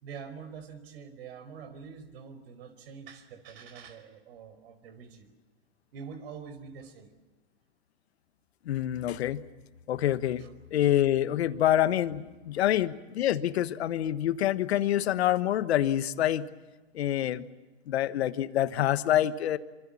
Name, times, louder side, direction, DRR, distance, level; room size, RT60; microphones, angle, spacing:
voice 1, 0.0-5.3 5.9-7.1 10.4-10.5 12.5-12.7, right 6 dB, 70° right, 10 dB, 4.9 m, -45 dB
voice 2, 8.6-9.4 9.9-10.4 10.7-16.5 16.9-17.4 17.9-19.6, left 12 dB, 75° left, 13 dB, 1.4 m, -26 dB
26.0 x 25.5 x 7.3 m, 1.2 s
hypercardioid pair, 105°, 32 cm